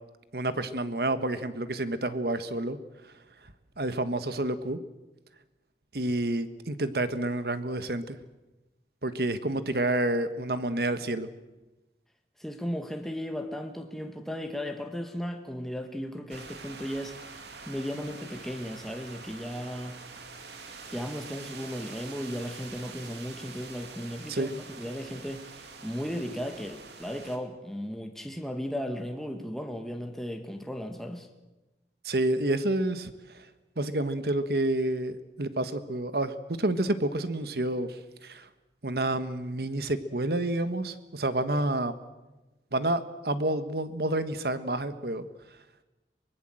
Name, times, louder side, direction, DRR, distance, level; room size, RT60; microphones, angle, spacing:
voice 1, 0.3-2.8 3.8-4.8 5.9-8.2 9.0-11.3 24.3-24.5 32.0-33.4 33.8-38.5 38.8-41.9 42.7-45.2, right 1 dB, 60° right, 12 dB, 1.4 m, -29 dB
voice 2, 12.4-17.1 17.7-20.0 20.9-24.5 24.8-25.4 25.8-31.3, equal, ahead, 4 dB, 1.5 m, -35 dB
sound 1, 16.3-27.4, right 4 dB, 75° right, 2.6 m, -45 dB
23.5 x 20.5 x 7.7 m, 1.1 s
head